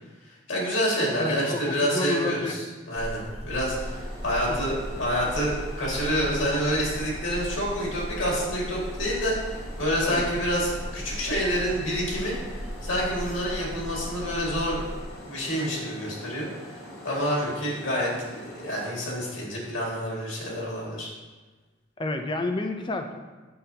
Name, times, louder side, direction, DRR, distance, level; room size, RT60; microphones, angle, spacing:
voice 1, 0.3-12.3 12.8-14.8 15.3-16.5 17.0-21.1, equal, 70° left, -4 dB, 2.0 m, -28 dB
voice 2, 1.2-2.5 4.5-4.6 10.1-10.2 22.0-23.2, left 2 dB, 25° left, 5 dB, 0.4 m, -30 dB
sound 1, 3.0-15.0, equal, 30° right, 0.6 m, -37 dB
sound 2, 3.6-18.9, left 1 dB, 45° left, 1.2 m, -44 dB
7.9 x 5.3 x 2.8 m, 1.3 s
head